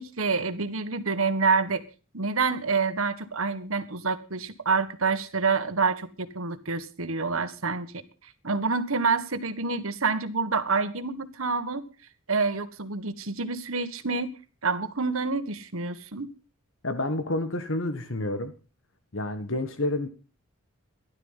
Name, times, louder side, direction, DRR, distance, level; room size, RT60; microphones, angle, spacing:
voice 1, 0.0-1.8 2.1-6.1 6.3-7.9 8.4-11.9 12.3-14.3 14.6-16.3, right 4 dB, 75° right, 1.7 m, -27 dB
voice 2, 16.8-18.5 19.1-20.1, left 1 dB, 60° left, 1.5 m, -29 dB
16.0 x 12.0 x 5.7 m
head